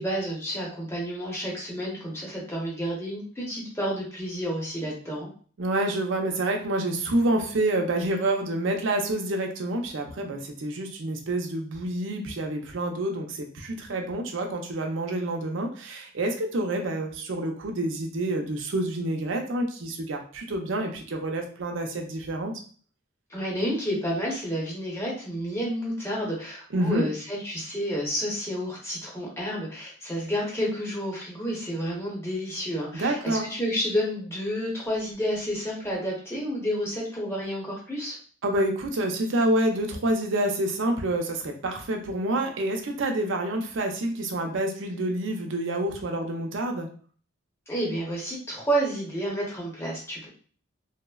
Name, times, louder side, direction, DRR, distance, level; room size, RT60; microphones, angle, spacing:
voice 1, 0.0-5.3 23.3-38.2 47.7-50.3, equal, 10° left, -4 dB, 0.8 m, -30 dB
voice 2, 5.6-22.5 26.7-27.1 32.9-33.5 38.4-46.9, right 1 dB, 65° right, 3 dB, 0.5 m, -28 dB
3.1 x 2.0 x 2.3 m, 0.43 s
head